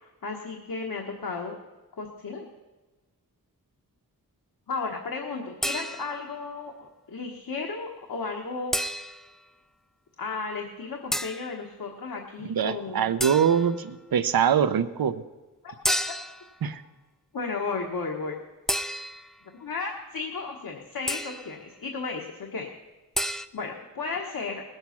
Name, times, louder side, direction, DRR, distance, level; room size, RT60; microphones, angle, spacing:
voice 1, 0.0-1.6 2.0-2.5 4.7-8.7 10.2-13.1 15.6-15.9 17.3-18.4 19.5-22.7 23.2-24.6, left 4 dB, 70° left, 0 dB, 1.4 m, -34 dB
sound 1, 5.6-6.3 8.7-9.4 11.1-11.5 13.2-13.8 15.8-16.5 18.7-19.4 21.1-21.5 23.1-23.5, equal, ahead, 0.3 m, -30 dB
voice 2, 12.4-15.2 16.6-16.8, right 8 dB, 80° right, 12 dB, 0.7 m, -24 dB
19.5 x 7.9 x 5.9 m, 1.2 s
wide cardioid pair, 135°, 35 cm